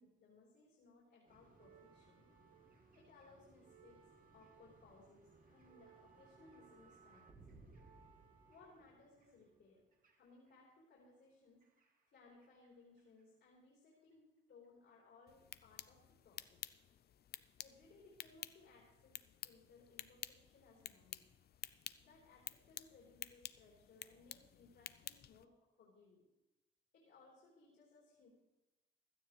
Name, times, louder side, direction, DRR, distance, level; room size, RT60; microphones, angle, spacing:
voice 1, 0.0-2.3 2.9-4.0 4.3-7.4 8.5-9.8 10.2-11.6 12.1-16.6 17.6-19.2 19.4-21.3 22.0-25.5 25.8-26.2 26.9-28.3, left 3 dB, 70° left, -5 dB, 3.9 m, -64 dB
sound 1, 1.3-10.7 11.6-12.7 13.0-13.2 14.1-14.2, right 4 dB, 45° right, 2.2 m, -64 dB
sound 2, 15.3-25.4, left 10 dB, 55° left, 0.5 m, -52 dB
16.5 x 12.0 x 3.3 m, 1.0 s
cardioid pair, 90°, 20 cm